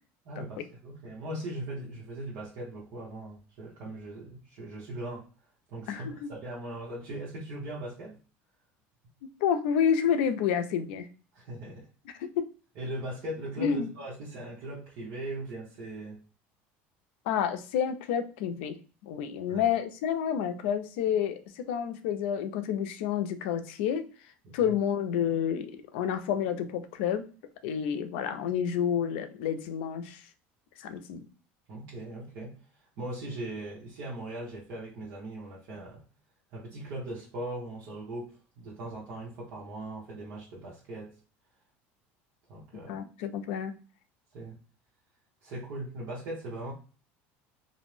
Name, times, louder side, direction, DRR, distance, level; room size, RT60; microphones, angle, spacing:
voice 1, 0.2-5.3 5.7-8.2 11.3-11.9 12.7-16.2 19.5-19.7 24.4-24.8 31.7-32.6 33.0-36.0 36.5-41.1 42.5-43.0 44.3-44.6 45.4-46.7, right 1 dB, 55° right, -6 dB, 0.9 m, -39 dB
voice 2, 5.9-6.3 9.4-11.1 12.2-12.5 13.6-13.9 17.3-18.8 19.0-24.1 24.5-27.3 27.6-30.2 30.8-31.2 42.9-43.7, left 8 dB, 90° left, 9 dB, 0.4 m, -29 dB
2.5 x 2.0 x 3.0 m, 0.36 s
cardioid pair, 145°, 6 cm